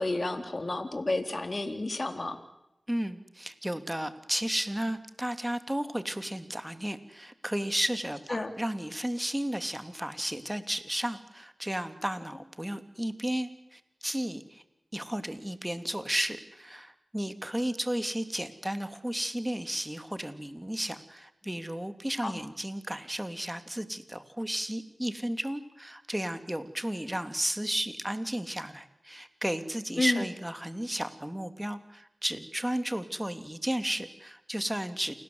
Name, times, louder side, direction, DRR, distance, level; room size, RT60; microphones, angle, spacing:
voice 1, 0.0-2.4 8.3-8.5 22.2-22.4 30.0-30.3, left 2 dB, 45° left, 6 dB, 3.5 m, -31 dB
voice 2, 2.9-14.6 14.9-35.1, right 1 dB, 10° right, 9 dB, 2.7 m, -33 dB
28.5 x 19.5 x 8.0 m, 0.89 s
cardioid pair, 40°, 0 cm